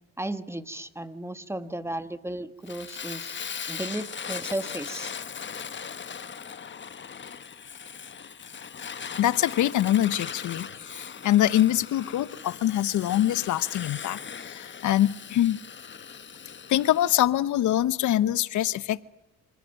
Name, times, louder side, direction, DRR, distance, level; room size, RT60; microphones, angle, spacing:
voice 1, 0.2-3.4 3.7-5.1, right 1 dB, 10° right, 11 dB, 1.6 m, -34 dB
Fire, 2.7-17.3, left 7 dB, 40° left, 1.4 m, -39 dB
voice 2, 9.2-15.6 16.7-19.0, left 12 dB, 75° left, 17 dB, 0.9 m, -24 dB
27.5 x 16.5 x 9.0 m, 0.94 s
cardioid pair, 90°, 30 cm